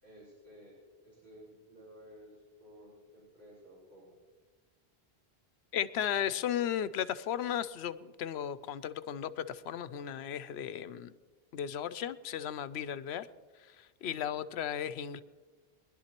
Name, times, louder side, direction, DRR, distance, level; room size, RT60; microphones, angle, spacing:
voice 1, 0.0-0.8 1.0-4.2 14.2-14.5, equal, 70° right, -9 dB, 5.0 m, -55 dB
voice 2, 5.7-11.1 11.5-13.3 13.7-15.2, left 9 dB, 80° left, 14 dB, 0.8 m, -35 dB
22.5 x 11.5 x 2.9 m, 1.3 s
omnidirectional pair, 1.1 m